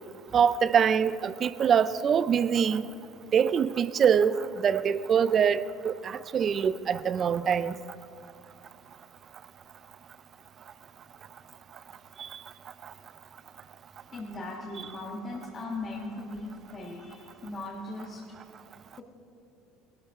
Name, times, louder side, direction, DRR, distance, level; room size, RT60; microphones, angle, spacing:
voice 1, 0.3-2.8 3.3-7.7, right 7 dB, 35° right, 0.4 m, -24 dB
voice 2, 14.1-18.2 18.9-19.0, left 2 dB, 35° left, 1.4 m, -38 dB
18.0 x 12.5 x 3.6 m
cardioid pair, 125°, 0 cm